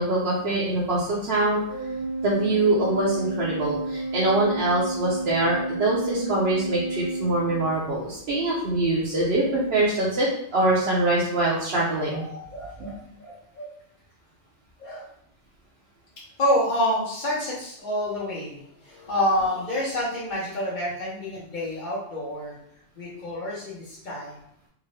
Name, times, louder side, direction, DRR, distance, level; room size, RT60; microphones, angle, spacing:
voice 1, 0.0-1.6 2.2-12.2, right 2 dB, 65° right, -7 dB, 1.0 m, -24 dB
Organ, 1.7-8.2, right 2 dB, 25° right, 0.8 m, -31 dB
voice 2, 12.1-13.7 14.8-15.1 16.4-22.6 23.0-24.4, left 1 dB, 45° left, -7 dB, 1.0 m, -28 dB
3.6 x 2.7 x 3.2 m, 0.70 s
omnidirectional pair, 1.1 m